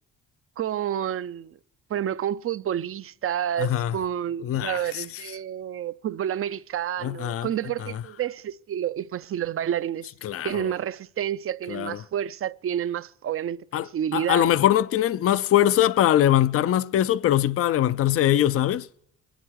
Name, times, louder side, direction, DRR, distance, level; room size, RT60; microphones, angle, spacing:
voice 1, 0.6-1.6 1.9-10.1 10.4-14.5, right 10 dB, 45° right, 0.5 m, -29 dB
voice 2, 3.6-3.9 4.4-5.0 7.0-7.5 10.2-10.6 11.7-12.0 13.7-18.9, left 12 dB, 50° left, 0.5 m, -22 dB
25.0 x 11.0 x 4.7 m
cardioid pair, 90°, 30 cm